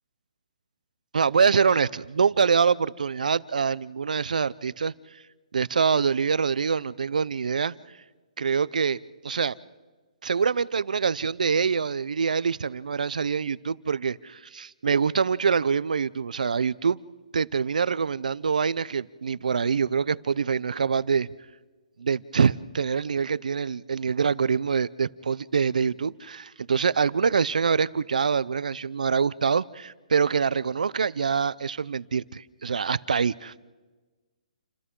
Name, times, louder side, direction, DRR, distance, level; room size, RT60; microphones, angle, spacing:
voice 1, 1.1-4.9 5.5-7.7 8.4-9.6 10.2-17.0 17.3-21.3 22.0-33.6, right 6 dB, 80° right, 0.6 m, -25 dB
29.0 x 26.0 x 3.8 m
hypercardioid pair, 180°, 4 cm